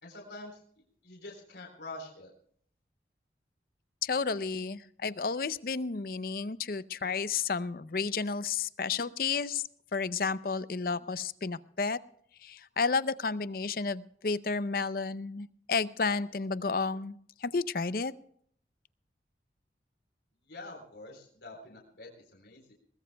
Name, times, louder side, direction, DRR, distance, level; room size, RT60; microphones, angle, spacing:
voice 1, 0.0-0.6 1.0-2.3 20.5-22.7, left 2 dB, 70° left, 1 dB, 3.8 m, -46 dB
voice 2, 4.0-9.6 9.9-12.0 12.4-18.1, left 4 dB, 50° left, 15 dB, 0.6 m, -32 dB
21.5 x 20.0 x 2.3 m, 0.62 s
head